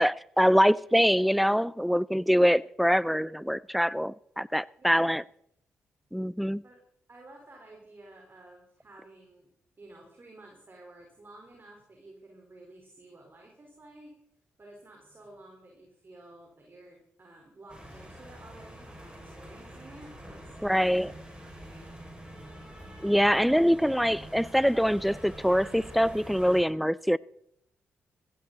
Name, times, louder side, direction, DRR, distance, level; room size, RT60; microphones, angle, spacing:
voice 1, 0.0-5.2 6.1-6.6 20.6-21.1 23.0-27.2, equal, ahead, 0.5 m, -24 dB
voice 2, 7.1-9.5 9.8-14.1 14.6-22.0 26.5-26.6, right 2 dB, 40° right, 4.4 m, -52 dB
sound 1, 17.7-26.6, equal, 15° right, 5.8 m, -46 dB
16.0 x 15.0 x 4.1 m
hypercardioid pair, 45°, 6 cm